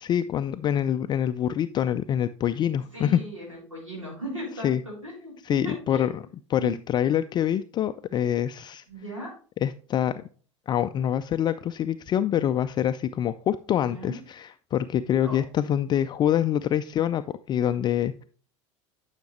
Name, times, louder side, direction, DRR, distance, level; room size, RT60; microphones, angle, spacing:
voice 1, 0.0-3.2 4.6-4.8 5.5-6.2 6.5-8.8 9.6-10.1 10.7-18.2, left 10 dB, 25° left, 11 dB, 0.3 m, -25 dB
voice 2, 2.9-6.1 6.6-6.7 8.9-9.3 13.8-14.2 15.2-15.4, equal, 85° right, -4 dB, 3.6 m, -37 dB
10.0 x 5.8 x 3.1 m, 0.41 s
figure-of-eight pair, 75°, 16 cm